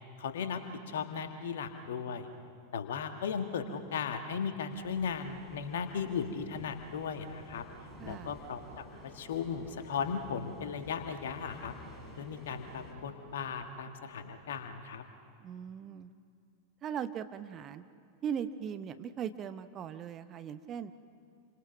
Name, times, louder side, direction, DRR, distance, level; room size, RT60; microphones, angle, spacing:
voice 1, 0.2-0.6 0.9-2.3 2.7-7.7 8.0-8.8 9.1-11.7 12.2-15.0, left 6 dB, 60° left, 7 dB, 1.7 m, -36 dB
sound 1, 4.7-12.9, left 1 dB, 5° left, 4.8 m, -52 dB
sound 2, 6.8-10.1 10.7-11.2 11.6-14.6, right 1 dB, 80° right, 2.6 m, -57 dB
voice 2, 8.0-8.3 15.4-16.1 16.8-17.8 18.2-20.9, right 8 dB, 30° right, 11 dB, 0.9 m, -39 dB
28.5 x 25.0 x 5.9 m, 2.3 s
figure-of-eight pair, 90°, 0 cm